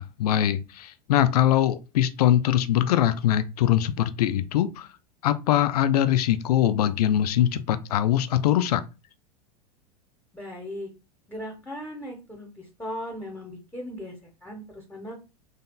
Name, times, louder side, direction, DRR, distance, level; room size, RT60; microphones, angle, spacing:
voice 1, 0.0-4.9 5.2-8.8, left 11 dB, 65° left, 0.5 m, -22 dB
voice 2, 10.3-10.9 11.3-14.1 14.4-15.2, equal, 10° left, 1.2 m, -37 dB
3.2 x 2.8 x 3.8 m
hypercardioid pair, 95°, 21 cm